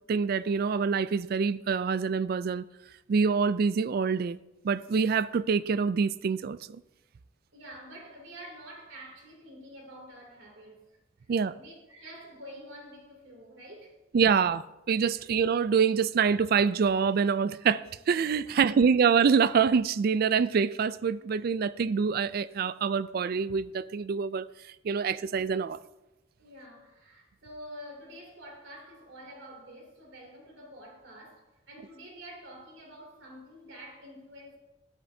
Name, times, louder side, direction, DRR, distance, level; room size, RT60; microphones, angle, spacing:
voice 1, 0.1-2.6 3.1-4.4 4.6-6.8 11.3-11.5 14.1-24.5 24.8-25.8, right 6 dB, 50° right, 0.3 m, -26 dB
voice 2, 7.5-10.8 11.5-14.2 15.1-15.2 18.4-18.7 26.4-34.6, equal, 75° right, 2.9 m, -48 dB
13.0 x 10.5 x 2.7 m
head